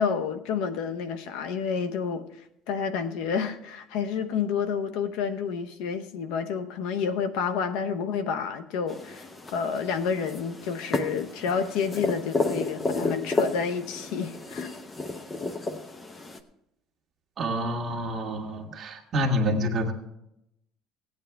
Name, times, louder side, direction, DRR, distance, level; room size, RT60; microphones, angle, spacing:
voice 1, 0.0-2.3 2.7-9.3 9.5-14.8, left 6 dB, 80° left, 0.8 m, -29 dB
sound 1, 8.9-16.4, left 3 dB, 20° left, 0.7 m, -32 dB
voice 2, 17.4-19.9, equal, 30° right, 1.6 m, -27 dB
16.5 x 9.0 x 3.4 m
cardioid pair, 150°, 0 cm